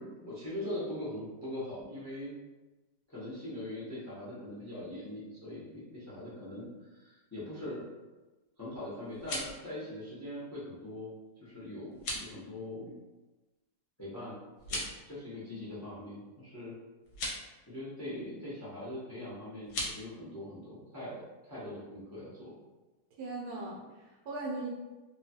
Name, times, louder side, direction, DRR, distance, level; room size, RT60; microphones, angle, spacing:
voice 1, 0.0-2.3 3.1-7.9 8.6-11.1 11.4-12.9 14.0-14.4 14.7-16.7 17.7-21.2 21.5-22.5, left 1 dB, 25° left, -9 dB, 0.3 m, -41 dB
sound 1, 9.0-9.6 11.9-12.3 14.6-15.0 17.0-17.4 19.6-19.9, left 1 dB, 65° left, 1.1 m, -37 dB
voice 2, 23.2-24.7, right 2 dB, 70° right, -3 dB, 1.1 m, -39 dB
2.9 x 2.2 x 2.8 m, 1.2 s
omnidirectional pair, 1.9 m